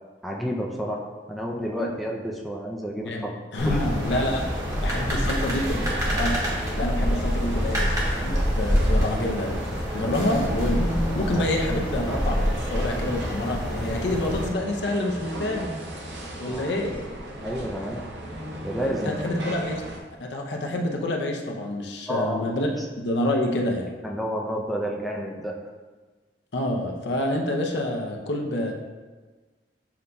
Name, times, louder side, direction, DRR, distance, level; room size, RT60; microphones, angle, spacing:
voice 1, 0.2-3.3 3.7-3.8 10.0-10.2 16.5-16.6 17.4-18.0 18.6-19.3 22.1-22.4 22.8-22.9 24.0-25.5, equal, ahead, -1 dB, 0.4 m, -30 dB
voice 2, 3.5-4.4 4.8-5.9 6.2-6.4 6.8-8.0 8.2-9.6 9.9-10.9 11.1-15.7 16.4-17.0 18.8-19.8 20.2-22.7 23.0-23.9 26.5-28.7, left 1 dB, 70° left, 1 dB, 0.6 m, -27 dB
sound 1, 3.6-14.5, equal, 20° right, 0.9 m, -26 dB
sound 2, 4.0-20.0, right 1 dB, 85° right, 0.6 m, -37 dB
sound 3, 10.0-12.3 15.1-16.4 18.2-20.1, left 1 dB, 40° left, 1.1 m, -36 dB
7.1 x 2.6 x 2.2 m, 1.3 s
head